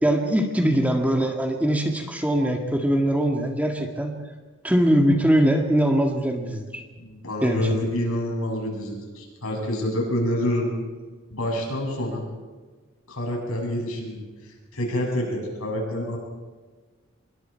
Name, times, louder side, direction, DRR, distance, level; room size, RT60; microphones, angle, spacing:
voice 1, 0.0-4.1 4.6-6.8 7.4-7.6, right 1 dB, 5° right, 2 dB, 1.9 m, -22 dB
voice 2, 7.0-10.7 11.3-12.3 13.1-14.2 14.7-16.2, left 1 dB, 85° left, -1 dB, 7.7 m, -27 dB
25.0 x 23.0 x 4.6 m, 1.4 s
head